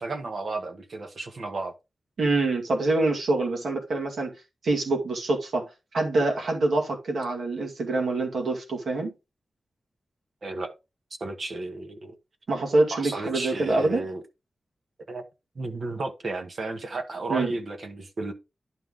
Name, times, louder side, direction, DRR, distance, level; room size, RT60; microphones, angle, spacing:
voice 1, 0.0-1.7 10.4-10.7 11.2-12.1 12.9-14.2 15.1-15.2 15.5-18.3, right 3 dB, 50° right, 1.1 m, -33 dB
voice 2, 2.2-4.3 4.6-5.7 5.9-9.1 12.5-14.0 17.3-17.5, right 2 dB, 80° right, 2.1 m, -25 dB
11.0 x 3.8 x 3.6 m
wide cardioid pair, 165°, 0 cm